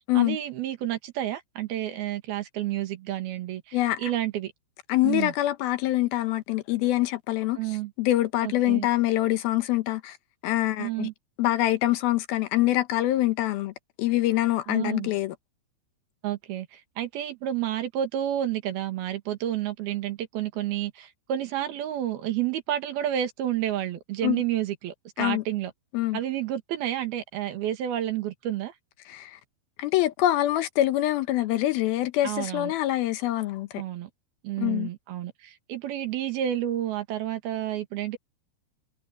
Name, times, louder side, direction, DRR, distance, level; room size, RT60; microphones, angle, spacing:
voice 1, 0.1-4.5 5.0-5.3 7.6-7.9 8.4-8.9 10.8-11.1 14.7-15.1 16.2-25.7 26.1-28.7 32.2-32.7 33.8-34.1 34.4-38.2, right 12 dB, 65° right, 3.3 m, -30 dB
voice 2, 3.7-4.1 4.9-7.6 8.0-10.2 10.4-11.1 11.4-13.7 14.0-15.3 24.2-24.4 25.2-25.4 25.9-26.2 29.1-29.4 29.8-33.7 34.6-34.9, left 15 dB, 75° left, 2.4 m, -25 dB
omnidirectional pair, 5.2 m